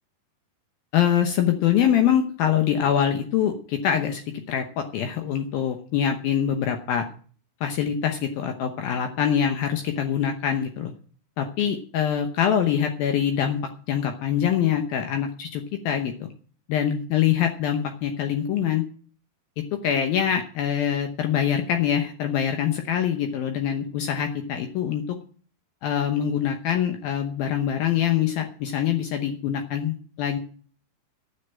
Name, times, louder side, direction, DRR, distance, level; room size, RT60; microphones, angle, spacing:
voice 1, 0.9-4.2 4.5-7.1 7.6-10.9 11.4-13.6 13.9-16.3 16.7-18.8 19.6-25.0 25.8-30.4, left 9 dB, 80° left, 6 dB, 2.1 m, -24 dB
12.5 x 6.8 x 8.6 m, 0.44 s
omnidirectional pair, 5.7 m